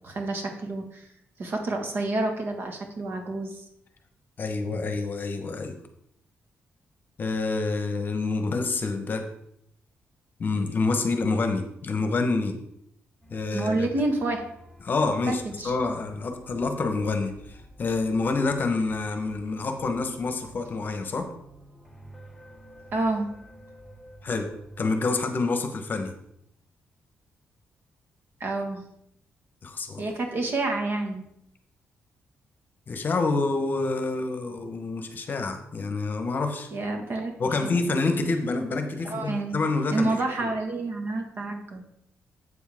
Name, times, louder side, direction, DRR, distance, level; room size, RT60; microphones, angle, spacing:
voice 1, 0.0-1.1 1.4-3.6 13.5-14.4 15.3-15.7 22.9-23.3 28.4-28.8 30.0-31.2 36.7-37.3 37.6-37.8 39.0-39.6 39.9-41.8, right 2 dB, 55° right, 3 dB, 1.5 m, -29 dB
voice 2, 4.4-5.7 7.2-9.2 10.4-12.6 13.3-13.9 14.8-21.3 24.2-24.5 24.8-26.1 29.6-30.0 32.9-36.7 37.4-40.5, left 3 dB, 45° left, 6 dB, 1.0 m, -27 dB
sound 1, 13.2-24.8, right 1 dB, 5° left, 1.0 m, -50 dB
8.1 x 7.2 x 3.6 m, 0.76 s
cardioid pair, 110°, 5 cm